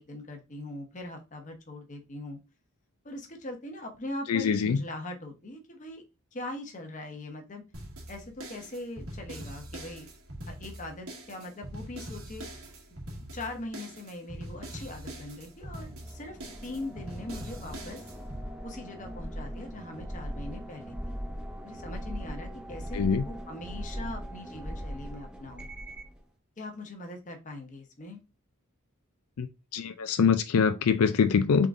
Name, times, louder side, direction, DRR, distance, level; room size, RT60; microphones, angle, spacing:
voice 1, 0.0-2.4 3.0-6.0 6.3-7.6 8.1-10.1 10.5-12.5 12.9-13.0 13.3-18.0 18.6-20.9 21.6-25.7 26.6-28.2, left 1 dB, 35° left, 1.0 m, -41 dB
voice 2, 4.3-4.8 22.9-23.2 29.4-29.5 29.7-31.7, left 6 dB, 90° left, 0.4 m, -24 dB
sound 1, 7.7-18.4, right 1 dB, 75° right, 1.6 m, -43 dB
sound 2, 15.6-26.2, equal, 5° right, 0.6 m, -40 dB
3.8 x 3.7 x 3.7 m
head